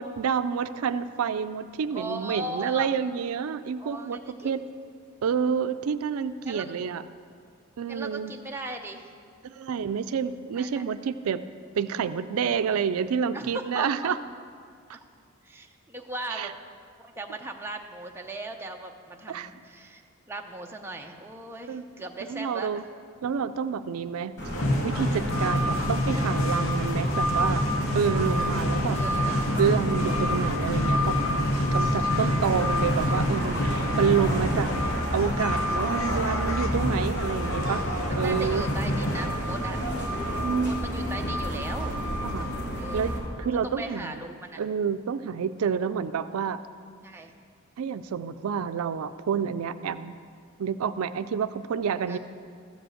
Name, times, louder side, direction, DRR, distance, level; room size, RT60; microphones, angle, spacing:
voice 1, 0.0-4.2 4.4-4.6 5.2-7.0 7.8-8.3 9.4-11.4 11.7-14.2 14.9-15.0 16.3-16.5 19.3-19.5 21.7-21.8 22.2-22.8 23.2-24.4 24.8-27.6 27.9-29.0 29.6-31.1 31.7-34.7 35.1-37.8 38.1-38.7 40.4-40.7 42.2-42.5 42.9-44.1 44.6-46.6 47.8-50.2 50.6-52.2, right 7 dB, 90° right, 12 dB, 0.4 m, -28 dB
voice 2, 1.9-2.9 3.8-4.1 4.4-4.5 6.5-6.7 7.9-9.1 10.6-10.9 13.3-14.1 15.4-16.5 17.0-20.0 20.3-22.7 28.9-29.4 38.1-39.8 40.6-42.0 42.8-43.1 43.6-44.6 47.0-47.3 52.1-52.2, right 2 dB, 10° right, 2 dB, 0.6 m, -38 dB
sound 1, 24.4-43.2, equal, 85° left, 2.3 m, -30 dB
sound 2, 24.5-39.3, left 1 dB, 70° left, 1.0 m, -28 dB
sound 3, 32.3-32.5 33.0-36.5 38.9-42.9 43.9-44.1, equal, 35° left, 3.2 m, -42 dB
13.5 x 5.2 x 7.8 m, 2.1 s
head